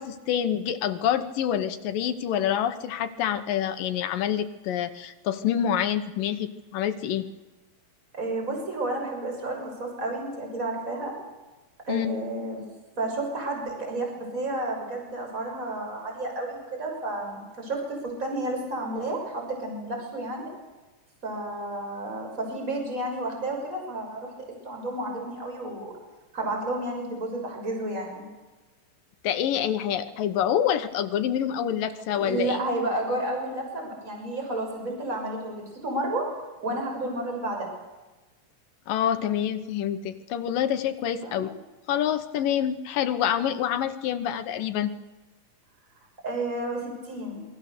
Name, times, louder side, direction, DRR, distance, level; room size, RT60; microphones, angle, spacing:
voice 1, 0.0-7.3 11.9-12.1 29.2-32.6 38.9-41.5 41.9-44.9, left 9 dB, 75° left, 9 dB, 2.7 m, -27 dB
voice 2, 8.2-11.1 11.9-12.6 13.0-20.5 21.2-24.3 24.6-25.9 26.3-28.2 32.1-36.3 36.6-37.7 41.2-41.5 46.2-47.4, right 2 dB, 20° right, 1 dB, 6.5 m, -31 dB
27.5 x 22.0 x 6.7 m, 1.2 s
omnidirectional pair, 4.1 m